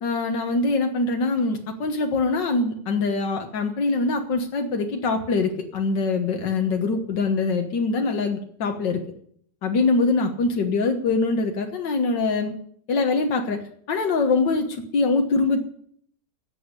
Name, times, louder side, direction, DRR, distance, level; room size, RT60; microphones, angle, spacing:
voice 1, 0.0-9.0 9.6-12.5 12.9-13.6 13.9-15.6, left 3 dB, 90° left, 4 dB, 2.1 m, -23 dB
14.5 x 8.4 x 9.7 m, 0.64 s
omnidirectional pair, 1.9 m